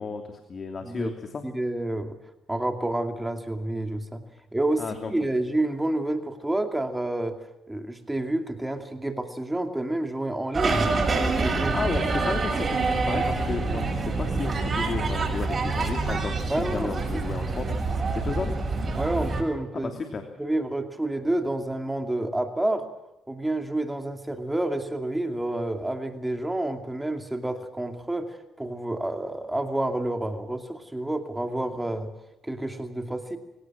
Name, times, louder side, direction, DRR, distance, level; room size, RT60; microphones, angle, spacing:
voice 1, 0.0-1.4 4.8-5.1 11.7-17.8 18.1-18.6 19.8-20.2, left 4 dB, 40° left, 5 dB, 2.9 m, -33 dB
voice 2, 0.8-1.1 1.4-2.2 2.5-4.2 4.5-7.4 7.7-10.9 11.4-11.7 12.2-12.3 16.5-17.2 18.9-19.9 20.4-22.8 23.3-32.1 32.4-33.4, right 1 dB, 10° right, 6 dB, 2.6 m, -29 dB
sound 1, 10.5-19.4, right 3 dB, 35° right, 7.1 m, -26 dB
26.0 x 17.0 x 7.5 m, 0.94 s
cardioid pair, 90°, 0 cm